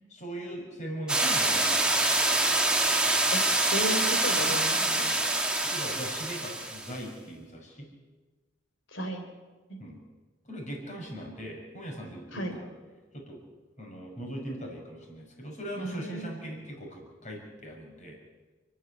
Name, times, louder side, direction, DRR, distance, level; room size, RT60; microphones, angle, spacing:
voice 1, 0.1-2.2 5.6-7.9 9.8-10.0 10.4-12.7 13.1-13.4 13.8-18.2, equal, 35° left, 0 dB, 6.1 m, -40 dB
sound 1, 1.1-7.0, right 2 dB, 5° right, 2.0 m, -26 dB
voice 2, 3.7-5.4 8.9-9.2 12.3-12.6 15.8-16.3, equal, 65° left, 5 dB, 4.0 m, -34 dB
30.0 x 10.0 x 10.0 m, 1.3 s
head